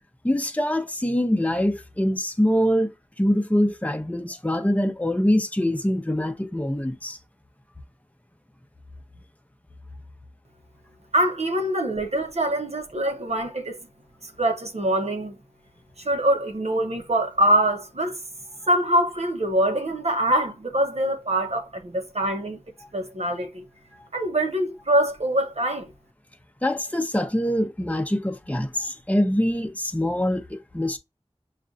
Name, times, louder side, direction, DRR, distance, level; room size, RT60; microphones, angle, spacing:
voice 1, 0.2-2.9 3.2-7.2 26.6-31.0, equal, 15° left, 0.7 m, -24 dB
voice 2, 11.1-13.8 14.2-15.4 16.0-18.2 18.7-22.6 22.9-23.6 24.1-25.9, right 1 dB, 80° right, 0.9 m, -24 dB
6.3 x 2.5 x 2.5 m
wide cardioid pair, 40°, 11 cm